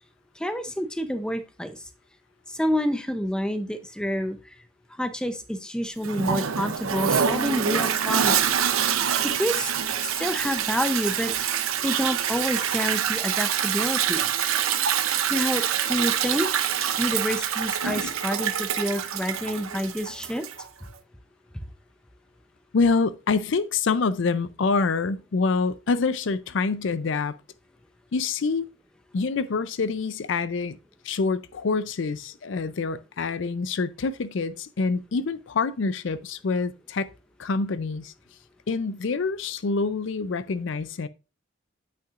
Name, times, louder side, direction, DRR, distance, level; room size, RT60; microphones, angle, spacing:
voice 1, 0.4-1.8 2.5-4.4 5.0-8.6 9.2-9.7 10.0-11.3 11.8-14.2 15.3-16.7 17.0-20.5 21.5-21.6, equal, 5° left, 0.6 m, -28 dB
Toilet flush, 6.0-20.7, right 8 dB, 90° right, 0.7 m, -26 dB
voice 2, 22.7-27.3 28.1-28.7 29.1-30.8 31.0-37.1 37.4-38.1 38.7-41.1, left 4 dB, 60° left, 0.4 m, -26 dB
8.8 x 5.8 x 2.4 m
head